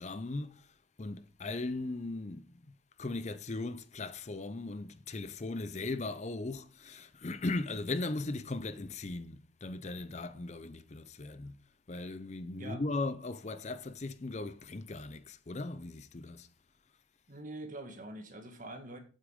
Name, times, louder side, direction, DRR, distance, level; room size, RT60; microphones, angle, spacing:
voice 1, 0.0-11.6 11.9-16.5, left 2 dB, 35° left, 0.6 m, -38 dB
voice 2, 17.3-19.0, right 1 dB, 45° right, 2.1 m, -44 dB
8.5 x 8.3 x 5.2 m
head